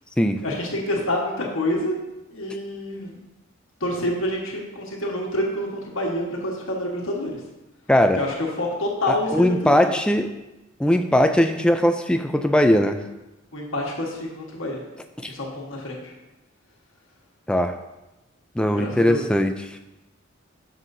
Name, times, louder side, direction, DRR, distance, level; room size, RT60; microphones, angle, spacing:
voice 1, 0.4-2.0 2.3-3.2 3.8-7.4 8.2-9.9 13.5-14.8 15.2-16.1 18.7-19.3, left 1 dB, 65° left, -1 dB, 1.4 m, -27 dB
voice 2, 9.1-10.4 10.8-13.0 15.2-15.3 17.5-17.7 18.6-19.8, equal, 5° left, 6 dB, 0.3 m, -20 dB
9.5 x 6.4 x 2.7 m, 1.0 s
head